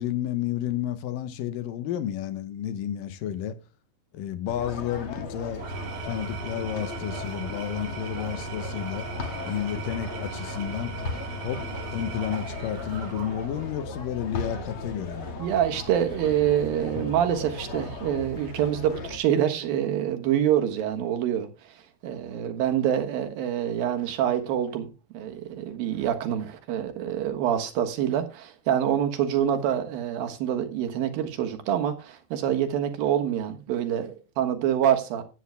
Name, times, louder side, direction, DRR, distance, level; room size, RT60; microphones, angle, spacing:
voice 1, 0.0-3.6 4.1-5.7 6.0-9.1 9.5-10.9 11.4-11.6 11.9-15.3, left 10 dB, 70° left, 2.3 m, -31 dB
sound 1, 4.5-19.2, left 3 dB, 45° left, 2.0 m, -37 dB
Engine / Tools, 5.5-13.8, right 5 dB, 50° right, 2.1 m, -38 dB
voice 2, 15.4-35.2, right 10 dB, 65° right, 3.0 m, -26 dB
15.5 x 9.0 x 2.2 m
omnidirectional pair, 4.7 m